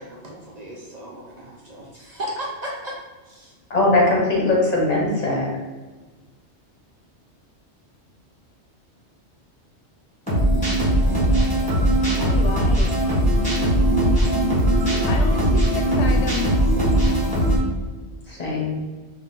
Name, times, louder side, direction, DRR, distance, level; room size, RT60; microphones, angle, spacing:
voice 1, 0.0-3.0 3.3-3.5 18.3-18.6, right 1 dB, 45° right, -3 dB, 0.6 m, -35 dB
voice 2, 3.7-5.5 18.3-18.8, left 2 dB, 40° left, -3 dB, 0.9 m, -20 dB
sound 1, 10.3-17.6, right 1 dB, 5° left, 1.4 m, -19 dB
voice 3, 12.2-13.2 15.1-16.6, left 6 dB, 80° left, 3 dB, 0.9 m, -30 dB
3.9 x 2.5 x 3.9 m, 1.3 s
omnidirectional pair, 1.2 m